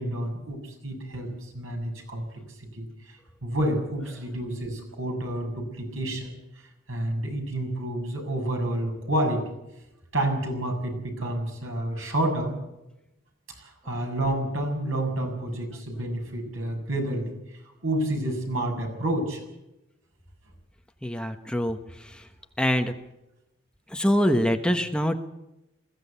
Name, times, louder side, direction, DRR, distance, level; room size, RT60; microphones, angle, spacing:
voice 1, 0.0-2.3 2.6-9.5 10.1-12.5 13.6-19.4, right 1 dB, 90° right, 2 dB, 7.0 m, -29 dB
voice 2, 21.0-21.8 22.0-22.2 22.6-22.9 23.9-25.2, equal, 5° left, 6 dB, 1.1 m, -24 dB
21.5 x 15.5 x 8.3 m, 0.92 s
head